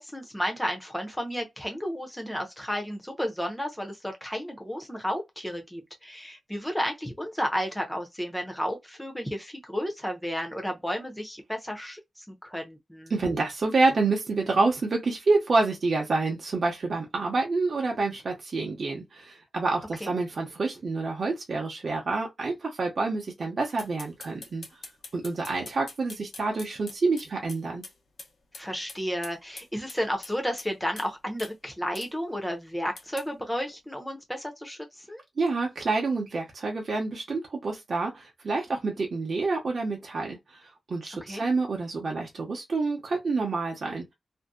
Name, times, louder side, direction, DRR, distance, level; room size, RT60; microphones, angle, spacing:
voice 1, 0.0-13.1 20.0-20.1 28.6-35.2 41.2-41.4, equal, 5° left, 0.7 m, -32 dB
voice 2, 13.1-24.6 25.1-27.8 35.4-44.1, right 3 dB, 50° right, 0.7 m, -28 dB
sound 1, 23.8-27.9 28.2-28.3 28.5-28.6 28.9-30.7 31.0-31.1 31.4-31.5 31.9-32.1 33.0-33.3, left 3 dB, 65° left, 0.9 m, -43 dB
2.6 x 2.2 x 2.3 m
wide cardioid pair, 165°, 0 cm